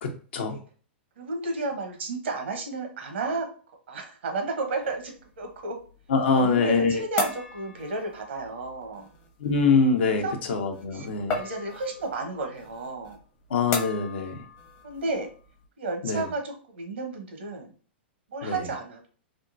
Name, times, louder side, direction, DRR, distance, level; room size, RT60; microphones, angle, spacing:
voice 1, 0.0-0.6 6.1-7.0 9.4-11.4 13.5-14.4 16.0-16.3 18.4-18.6, left 4 dB, 70° left, 4 dB, 0.8 m, -24 dB
voice 2, 1.2-3.5 3.9-5.8 6.3-9.1 10.1-10.3 10.9-13.2 14.8-15.3 15.8-17.7 18.3-19.1, right 3 dB, 75° right, 4 dB, 1.0 m, -32 dB
sound 1, 4.8-15.7, left 4 dB, 40° left, 0.9 m, -38 dB
3.5 x 2.3 x 2.6 m, 0.41 s
hypercardioid pair, 115°, 6 cm